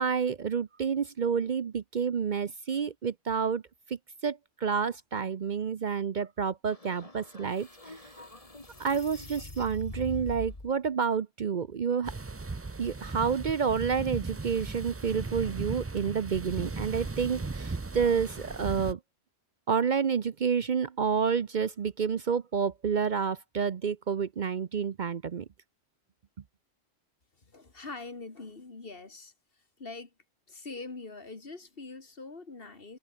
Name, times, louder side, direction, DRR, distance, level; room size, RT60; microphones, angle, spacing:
voice 1, 0.0-3.6 3.9-8.0 8.8-12.1 12.8-19.0 19.7-25.5, right 6 dB, 50° right, 0.8 m, -29 dB
sound 1, 6.7-10.7, left 2 dB, 30° left, 2.9 m, -43 dB
sound 2, 12.1-18.9, right 3 dB, 25° right, 0.3 m, -37 dB
voice 2, 27.5-29.3 29.8-30.1 30.5-33.0, left 3 dB, 60° left, 2.5 m, -43 dB
omnidirectional pair, 1.1 m